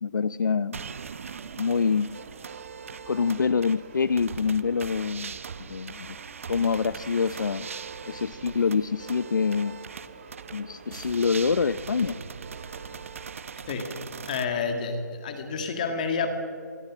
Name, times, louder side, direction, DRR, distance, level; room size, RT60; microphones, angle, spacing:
voice 1, 0.0-0.8 1.6-2.1 3.1-5.4 5.7-6.2 6.5-7.7 8.1-9.8 10.5-12.2, left 5 dB, 90° left, 16 dB, 0.7 m, -26 dB
sound 1, 0.7-14.4, right 6 dB, 45° right, 0.9 m, -41 dB
sound 2, 0.8-14.0, right 5 dB, 30° right, 2.0 m, -50 dB
voice 2, 14.3-16.3, left 5 dB, 25° left, 6 dB, 1.9 m, -29 dB
26.0 x 23.0 x 6.1 m, 2.4 s
hypercardioid pair, 175°, 10 cm